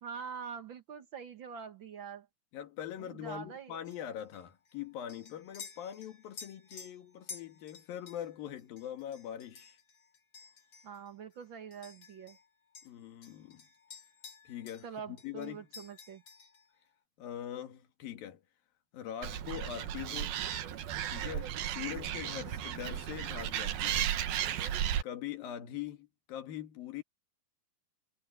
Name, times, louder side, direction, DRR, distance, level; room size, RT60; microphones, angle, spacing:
voice 1, 0.0-2.3 3.0-3.8 10.8-12.4 14.8-16.2, right 7 dB, 55° right, 1.3 m, -44 dB
voice 2, 2.5-9.8 12.8-13.7 14.5-15.7 17.2-18.4 18.9-20.4 21.1-24.2 25.0-27.0, left 10 dB, 80° left, 3.7 m, -42 dB
sound 1, 3.8-12.5 12.7-14.9 15.2-16.7, left 5 dB, 40° left, 3.6 m, -52 dB
Animal, 19.2-25.0, right 10 dB, 85° right, 3.3 m, -34 dB
omnidirectional pair, 4.1 m